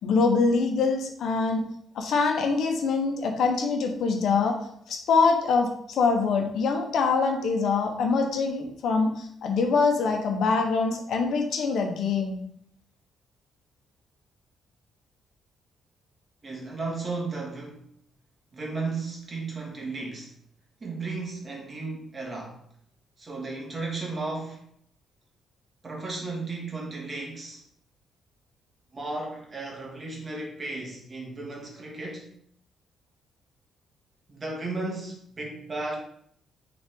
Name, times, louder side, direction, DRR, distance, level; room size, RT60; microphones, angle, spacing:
voice 1, 0.0-1.7 1.9-4.5 4.9-12.4, left 4 dB, 70° left, 3 dB, 1.1 m, -24 dB
voice 2, 16.4-17.8 18.5-20.3 20.8-22.6 23.2-24.6 25.8-27.6 28.9-32.3 34.3-36.0, right 3 dB, 35° right, -1 dB, 2.0 m, -34 dB
6.2 x 4.0 x 3.8 m, 0.68 s
cardioid pair, 90°, 0 cm